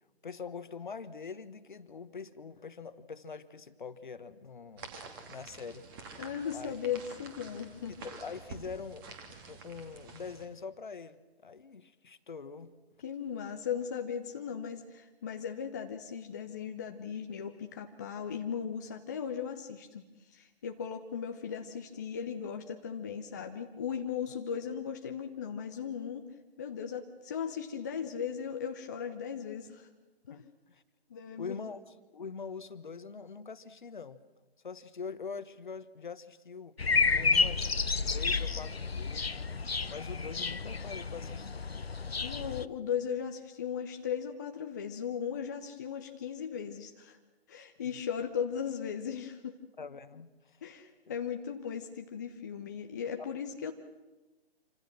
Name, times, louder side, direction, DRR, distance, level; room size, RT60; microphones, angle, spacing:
voice 1, 0.2-4.9 5.3-5.9 6.5-6.7 8.0-9.2 9.5-12.7 30.3-30.8 31.4-34.2 34.6-37.8 38.1-39.4 39.9-41.7 47.9-48.0 49.8-50.6 51.1-51.2 53.2-53.3, left 5 dB, 50° left, 13 dB, 1.4 m, -44 dB
sound 1, 4.8-10.4, right 4 dB, 20° right, 2.8 m, -48 dB
voice 2, 6.2-8.0 13.0-26.3 26.6-29.9 30.3-30.4 31.1-31.6 42.2-47.2 47.5-49.6 50.6-53.7, left 7 dB, 15° left, 4 dB, 0.7 m, -37 dB
Midday ambiance in a residential development, 36.8-42.7, left 4 dB, 70° left, 1.0 m, -31 dB
27.0 x 26.0 x 6.3 m, 1.1 s
figure-of-eight pair, 140°, 31 cm